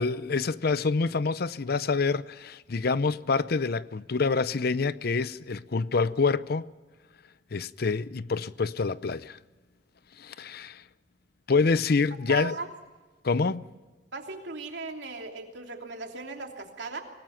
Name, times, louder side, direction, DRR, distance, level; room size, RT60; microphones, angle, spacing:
voice 1, 0.0-6.6 7.5-9.4 10.2-10.8 11.5-12.5 13.2-13.6, left 4 dB, 60° left, 0.6 m, -27 dB
voice 2, 12.3-12.7 14.1-17.0, right 4 dB, 75° right, 3.1 m, -37 dB
25.5 x 19.0 x 5.8 m
head